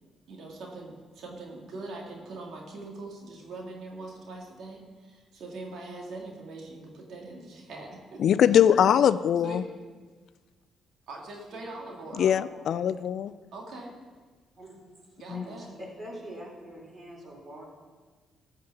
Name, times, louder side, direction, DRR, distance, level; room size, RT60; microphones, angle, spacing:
voice 1, 0.3-8.4 9.4-9.6 11.1-12.3 13.5-13.9 15.2-15.7, right 2 dB, 70° right, 0 dB, 2.1 m, -42 dB
voice 2, 8.2-9.6 12.2-13.3 15.3-15.4, left 9 dB, 65° left, 15 dB, 0.4 m, -22 dB
voice 3, 11.5-12.7 14.6-14.8 15.3-17.6, equal, 30° right, -2 dB, 4.0 m, -45 dB
13.5 x 5.2 x 7.0 m, 1.4 s
cardioid pair, 90°, 0 cm